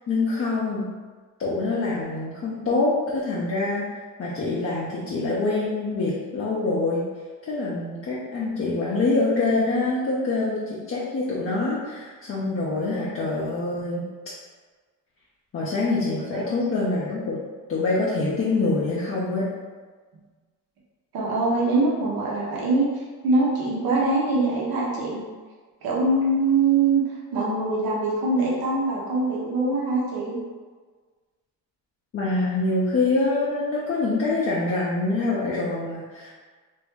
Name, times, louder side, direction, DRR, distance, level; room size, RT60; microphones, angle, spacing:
voice 1, 0.1-0.8 1.4-7.0 7.5-14.1 15.5-17.4 17.7-19.5 32.1-36.3, left 3 dB, 40° left, -7 dB, 0.7 m, -25 dB
voice 2, 21.1-25.2 25.8-27.0 27.3-30.4, right 3 dB, 70° right, -5 dB, 1.0 m, -23 dB
2.8 x 2.6 x 3.5 m, 1.4 s
cardioid pair, 100°, 36 cm